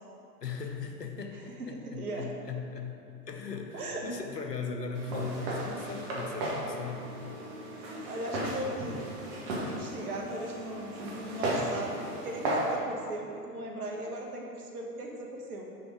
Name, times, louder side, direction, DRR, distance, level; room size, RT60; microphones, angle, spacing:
voice 1, 0.4-2.9 3.3-7.2, left 4 dB, 85° left, 4 dB, 0.9 m, -38 dB
voice 2, 1.3-2.3 3.7-4.0 7.7-9.0 9.6-12.0 12.2-15.7, right 1 dB, 65° right, 0 dB, 1.5 m, -38 dB
Walk footsteps, 4.9-12.8, right 1 dB, 40° right, 1.6 m, -35 dB
6.1 x 5.8 x 5.0 m, 2.5 s
figure-of-eight pair, 100°, 47 cm